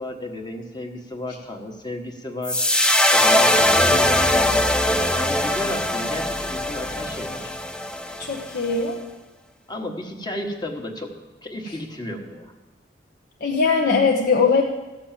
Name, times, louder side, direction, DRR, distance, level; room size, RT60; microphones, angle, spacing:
voice 1, 0.0-2.6 3.1-4.6 5.1-7.5 9.7-11.1 11.4-12.5, left 1 dB, 25° left, 2 dB, 1.3 m, -33 dB
sound 1, 2.4-8.8, left 1 dB, 5° left, 0.5 m, -21 dB
voice 2, 8.2-9.0 13.4-14.6, left 4 dB, 60° left, -1 dB, 0.9 m, -20 dB
14.5 x 6.4 x 7.4 m, 1.1 s
head